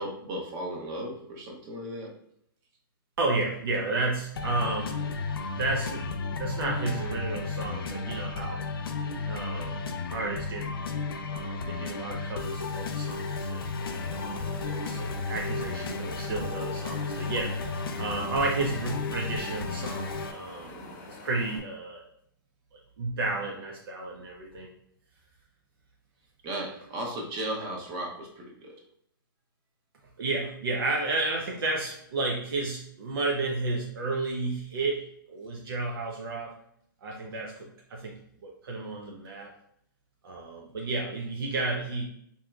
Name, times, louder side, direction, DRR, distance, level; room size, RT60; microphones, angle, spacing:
voice 1, 0.0-2.1 20.7-21.0 26.4-28.8, right 1 dB, 40° right, 0 dB, 1.0 m, -36 dB
voice 2, 3.2-5.0 5.5-6.0 6.4-8.6 9.3-9.8 10.1-10.8 11.3-13.7 14.1-17.5 18.0-20.7 21.1-22.0 22.7-24.7 30.2-36.5 37.0-38.1 38.4-39.5 40.2-42.0, right 3 dB, 80° right, -1 dB, 0.7 m, -32 dB
sound 1, 4.3-20.3, left 4 dB, 90° left, 0.5 m, -33 dB
Wind, 13.8-21.6, left 3 dB, 45° left, 0.8 m, -47 dB
3.8 x 2.8 x 2.3 m, 0.69 s
hypercardioid pair, 135°, 12 cm